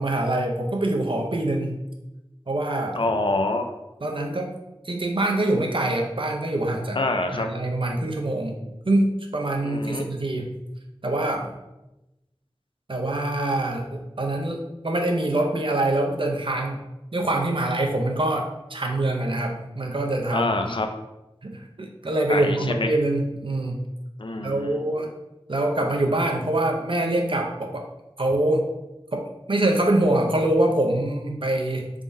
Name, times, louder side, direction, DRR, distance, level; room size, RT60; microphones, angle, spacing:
voice 1, 0.0-1.8 2.5-3.1 4.0-4.5 4.8-7.0 7.3-8.6 8.9-10.5 11.0-11.5 12.9-16.8 17.1-20.8 21.4-23.8 24.4-25.1 25.5-27.9 28.2-28.7 29.1-31.9, right 1 dB, 60° right, 1 dB, 0.6 m, -24 dB
voice 2, 3.0-3.8 7.0-7.5 9.6-10.0 20.3-20.9 22.3-22.9 24.2-24.8, left 2 dB, 55° left, 5 dB, 0.4 m, -26 dB
3.5 x 3.4 x 2.6 m, 0.96 s
wide cardioid pair, 45°, 10 cm